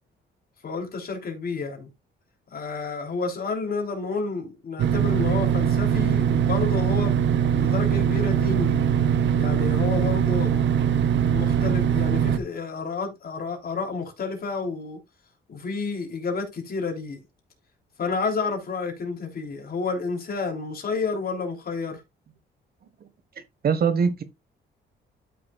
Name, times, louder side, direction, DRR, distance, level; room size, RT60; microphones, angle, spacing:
voice 1, 0.6-1.9 2.5-8.8 9.4-15.0 15.5-17.2 18.0-22.0, left 4 dB, 50° left, 3.3 m, -30 dB
sound 1, 4.8-12.4, right 8 dB, 65° right, 0.8 m, -22 dB
voice 2, 23.6-24.2, right 6 dB, 50° right, 1.5 m, -22 dB
12.5 x 6.1 x 2.4 m
cardioid pair, 90°, 20 cm